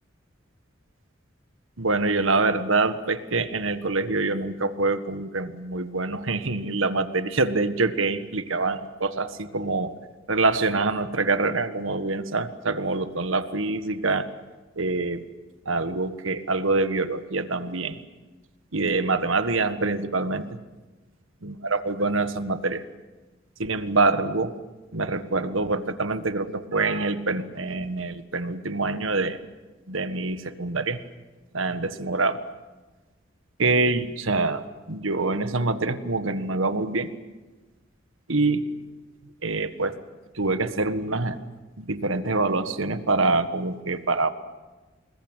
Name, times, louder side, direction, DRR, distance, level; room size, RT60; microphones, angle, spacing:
voice 1, 1.8-9.9 10.3-14.3 14.7-15.3 15.6-18.0 18.7-20.6 21.4-22.8 23.6-24.6 24.9-29.4 29.9-31.0 31.5-32.4 33.6-37.1 38.3-38.6 39.4-39.9 40.3-41.4 41.8-44.3, right 3 dB, 80° right, 10 dB, 1.6 m, -25 dB
27.5 x 21.0 x 9.1 m, 1.2 s
head